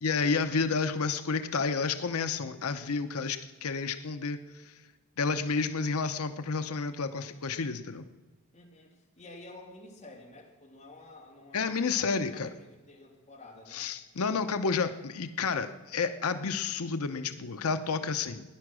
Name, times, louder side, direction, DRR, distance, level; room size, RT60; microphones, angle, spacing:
voice 1, 0.0-4.7 5.2-8.0 11.5-12.5 13.7-18.4, left 4 dB, 75° left, 9 dB, 0.8 m, -30 dB
voice 2, 8.5-13.9, left 2 dB, 30° left, -2 dB, 3.2 m, -51 dB
16.0 x 10.5 x 6.2 m, 1.3 s
head